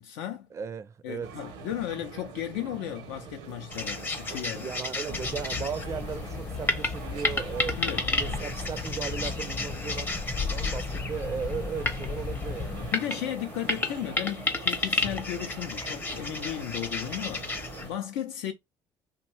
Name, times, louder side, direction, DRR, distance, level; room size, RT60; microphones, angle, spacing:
voice 1, 0.0-0.5 1.0-4.7 5.1-5.2 7.8-8.1 12.9-18.5, left 11 dB, 85° left, 0.4 m, -35 dB
voice 2, 0.5-1.3 4.5-10.1 10.5-12.8, right 7 dB, 30° right, 0.4 m, -36 dB
sound 1, 1.2-18.0, right 6 dB, 80° right, 0.7 m, -44 dB
sound 2, 3.7-17.9, left 2 dB, 20° left, 0.5 m, -33 dB
sound 3, 5.1-12.9, left 4 dB, 45° left, 0.9 m, -36 dB
2.7 x 2.2 x 3.1 m
supercardioid pair, 85°, 9 cm